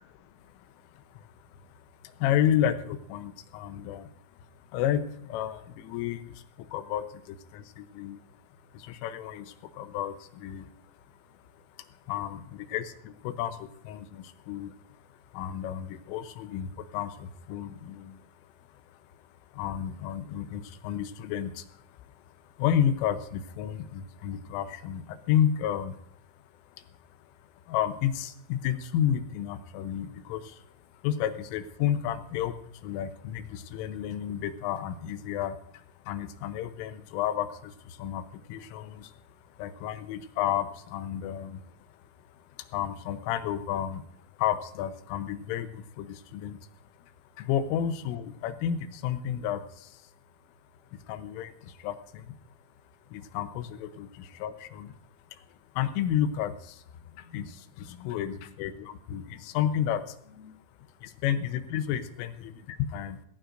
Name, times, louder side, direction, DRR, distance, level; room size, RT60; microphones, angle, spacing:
voice 1, 0.3-4.1 4.5-8.2 8.7-26.0 26.7-26.9 27.2-41.9 42.2-44.0 44.3-50.1 50.9-52.4 53.1-55.0 55.3-60.6 61.0-63.2, left 10 dB, 85° left, 10 dB, 3.4 m, -32 dB
17.5 x 16.0 x 2.6 m, 0.69 s
omnidirectional pair, 5.7 m